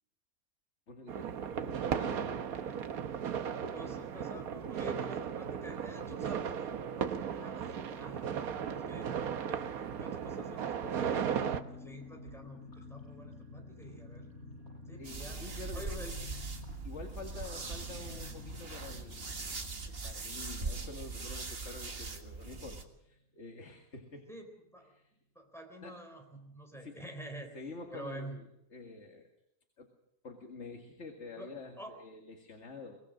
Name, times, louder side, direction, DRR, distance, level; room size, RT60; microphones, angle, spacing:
voice 1, 0.9-1.3 1.6-3.1 3.9-4.0 4.3-4.4 15.0-16.1 16.8-19.3 20.0-24.3 24.9-25.1 25.8-26.0 26.7-27.0 27.5-29.3 29.8-29.9 30.2-33.0, left 3 dB, 50° left, 3 dB, 2.2 m, -48 dB
sound 1, 1.1-11.6, right 7 dB, 80° right, 1.4 m, -36 dB
voice 2, 3.7-9.1 9.5-14.3 14.9-16.1 24.3-24.9 25.3-27.6 27.9-28.4 31.4-31.9, right 1 dB, ahead, 3 dB, 3.9 m, -48 dB
sound 2, 10.8-23.1 23.4-23.5 23.8-24.1, left 2 dB, 70° left, 8.7 m, -51 dB
sound 3, 15.0-22.8, right 3 dB, 40° right, 1.9 m, -41 dB
24.0 x 18.5 x 6.4 m, 0.82 s
omnidirectional pair, 1.5 m